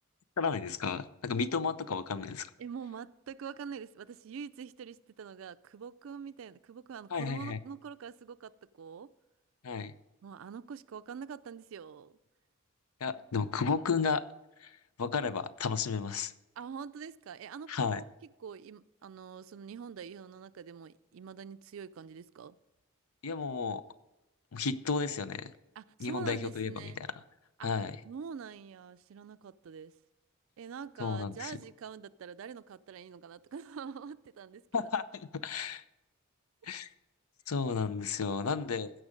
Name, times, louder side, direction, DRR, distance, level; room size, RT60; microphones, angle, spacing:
voice 1, 0.4-2.5 7.1-7.6 9.6-9.9 13.0-14.2 14.6-16.3 17.7-18.0 23.2-23.8 24.5-25.5 26.0-26.9 27.6-28.0 31.0-31.6 34.7-35.8 36.6-36.9 37.5-38.9, left 5 dB, 85° left, 0.6 m, -33 dB
voice 2, 2.6-9.1 10.2-12.2 13.3-13.7 16.6-18.0 18.4-22.6 25.8-27.0 27.6-27.7 28.0-29.9 30.6-34.8, right 6 dB, 65° right, 0.4 m, -45 dB
16.0 x 6.2 x 5.1 m
head